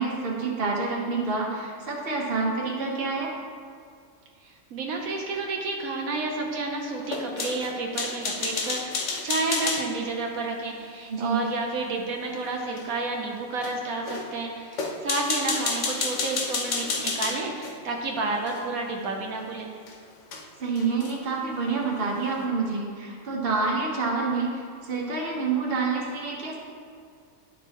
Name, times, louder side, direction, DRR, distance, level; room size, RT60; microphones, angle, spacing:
voice 1, 0.0-3.3 11.1-11.4 20.6-26.6, right 4 dB, 45° right, -2 dB, 1.4 m, -27 dB
voice 2, 4.4-19.7, right 3 dB, 85° right, 1 dB, 1.2 m, -31 dB
sound 1, 7.1-9.9 12.8-12.9 13.6-13.8 14.1-14.3 14.7-17.8 18.5-18.6 19.9-20.0 20.3-20.4 20.8-21.2, left 4 dB, 60° left, 1.1 m, -30 dB
11.0 x 6.1 x 3.0 m, 2.2 s
omnidirectional pair, 1.5 m